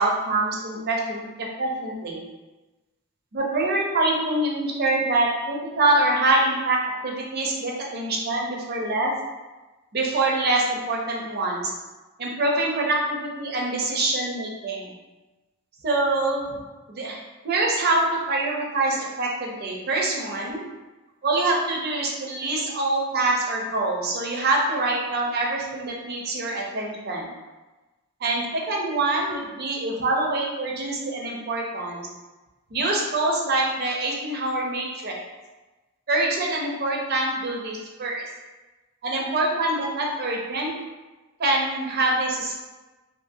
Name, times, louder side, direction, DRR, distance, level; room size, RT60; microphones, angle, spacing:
voice 1, 0.0-2.2 3.3-6.8 7.0-9.1 9.9-11.7 12.2-14.9 15.8-16.5 16.9-17.2 17.4-20.7 21.2-27.3 28.2-32.1 32.7-35.2 36.1-38.2 39.0-40.7 41.4-42.5, right 2 dB, 45° right, -2 dB, 0.5 m, -25 dB
2.6 x 2.5 x 2.6 m, 1.2 s
head